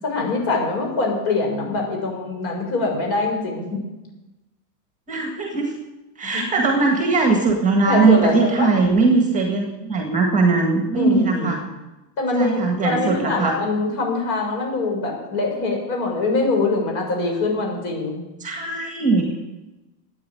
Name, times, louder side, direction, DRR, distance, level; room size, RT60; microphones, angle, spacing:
voice 1, 0.0-3.9 6.3-6.4 7.8-8.7 10.9-11.5 12.2-18.2, left 3 dB, 45° left, 0 dB, 6.9 m, -23 dB
voice 2, 5.1-5.7 6.2-11.6 12.3-13.6 18.4-19.3, right 4 dB, 15° right, 3 dB, 1.8 m, -20 dB
13.5 x 9.4 x 8.8 m, 1.0 s
supercardioid pair, 150°, 48 cm